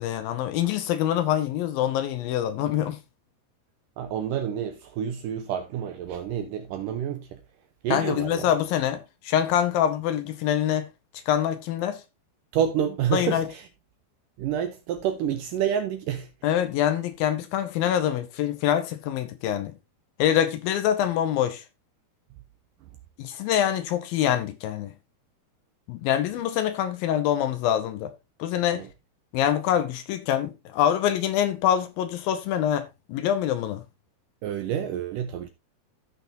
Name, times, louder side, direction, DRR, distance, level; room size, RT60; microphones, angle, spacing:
voice 1, 0.0-3.0 7.9-10.9 11.3-12.0 13.1-13.5 16.4-19.8 20.2-21.6 23.2-24.9 25.9-28.1 28.4-28.9 29.3-33.8, left 10 dB, 75° left, 2.4 m, -25 dB
voice 2, 4.0-7.4 7.8-8.5 12.5-13.7 14.4-16.3 28.7-28.9 34.4-35.5, right 9 dB, 80° right, 2.0 m, -28 dB
15.0 x 5.9 x 2.7 m
omnidirectional pair, 4.6 m